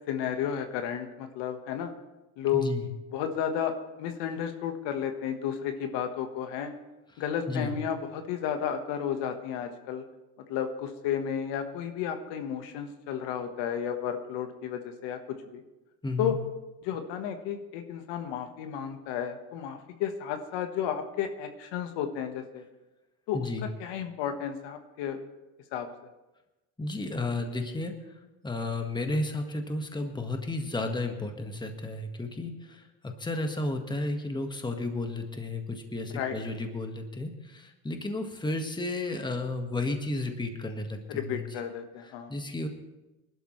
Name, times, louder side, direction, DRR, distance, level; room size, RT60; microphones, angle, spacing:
voice 1, 0.1-1.9 2.4-2.7 3.1-6.7 7.2-10.0 10.5-15.2 15.5-15.6 16.2-16.4 16.8-22.6 23.3-25.2 25.7-25.9 36.1-36.3 41.1-42.3, left 8 dB, 65° left, 7 dB, 1.5 m, -32 dB
voice 2, 2.5-2.9 7.5-7.7 16.0-16.3 23.3-23.7 26.8-28.0 28.4-41.4 42.3-42.7, left 2 dB, 10° left, 5 dB, 1.6 m, -33 dB
20.5 x 12.0 x 3.2 m, 1.0 s
supercardioid pair, 100°, 45 cm